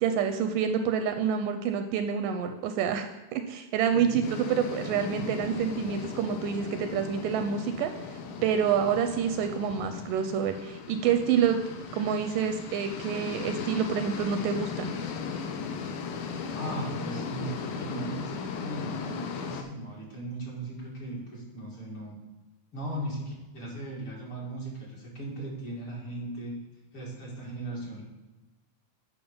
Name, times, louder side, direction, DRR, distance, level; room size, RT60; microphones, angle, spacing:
voice 1, 0.0-7.9 8.4-11.6 11.9-15.0, right 7 dB, 80° right, 7 dB, 2.1 m, -27 dB
sound 1, 4.2-19.6, left 6 dB, 85° left, 2.6 m, -37 dB
voice 2, 16.5-22.2 22.7-26.6 26.9-28.0, right 1 dB, 40° left, -4 dB, 2.7 m, -37 dB
8.6 x 5.7 x 5.4 m, 1.1 s
omnidirectional pair, 4.0 m